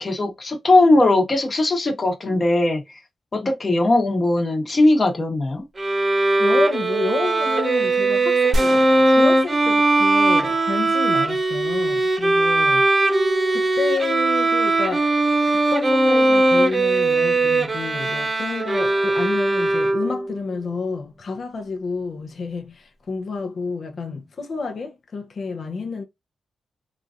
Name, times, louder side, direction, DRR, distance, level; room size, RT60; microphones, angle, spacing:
voice 1, 0.0-2.8 3.3-5.6, left 2 dB, 45° left, 1.2 m, -19 dB
Bowed string instrument, 5.8-20.3, right 2 dB, 40° right, 0.8 m, -19 dB
voice 2, 6.4-12.9 13.5-15.1 15.7-26.0, left 4 dB, 65° left, 0.7 m, -29 dB
sound 1, 8.5-10.8, right 1 dB, 70° right, 0.5 m, -30 dB
3.0 x 2.5 x 2.4 m
cardioid pair, 55°, 0 cm